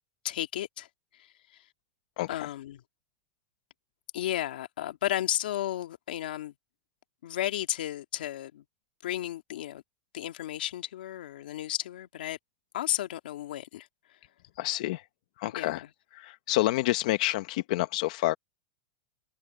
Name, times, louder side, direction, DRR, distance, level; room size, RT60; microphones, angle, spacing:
voice 1, 0.2-0.9 1.1-1.7 2.3-2.8 4.1-6.5 7.2-8.6 9.0-9.8 10.1-12.4 12.7-14.2 15.5-15.8, left 13 dB, 85° left, 2.0 m, -33 dB
voice 2, 2.2-2.5 14.6-15.1 15.4-15.8 16.1-18.4, left 17 dB, 50° left, 0.7 m, -28 dB
supercardioid pair, 175°, 5 cm